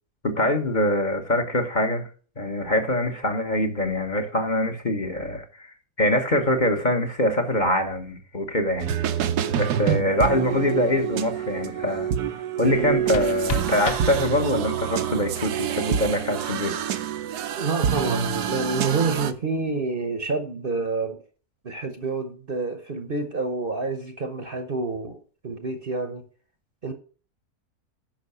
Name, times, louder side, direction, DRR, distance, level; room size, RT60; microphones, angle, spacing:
voice 1, 0.2-2.1 2.4-8.9 9.6-12.1 12.6-16.7, left 1 dB, 30° left, 1.2 m, -24 dB
sound 1, 8.8-19.3, right 9 dB, 80° right, 1.3 m, -27 dB
sound 2, 12.7-14.7, left 8 dB, 85° left, 0.5 m, -35 dB
voice 2, 17.6-21.2 21.6-25.2 25.4-26.2 26.8-26.9, right 3 dB, 40° right, 1.0 m, -28 dB
10.5 x 5.6 x 5.5 m
omnidirectional pair, 1.7 m